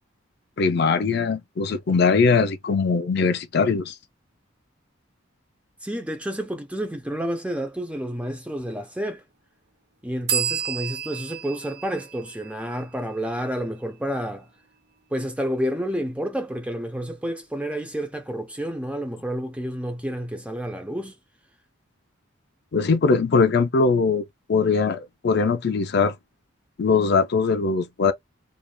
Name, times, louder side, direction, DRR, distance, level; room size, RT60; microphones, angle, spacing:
voice 1, 0.6-3.9 22.7-24.2 24.5-26.1 26.8-28.1, left 4 dB, 50° left, 0.4 m, -21 dB
voice 2, 5.8-9.2 10.0-14.5 15.1-21.1, equal, 5° right, 0.5 m, -30 dB
sound 1, 10.3-13.8, right 9 dB, 50° right, 0.6 m, -31 dB
3.3 x 2.4 x 2.2 m
head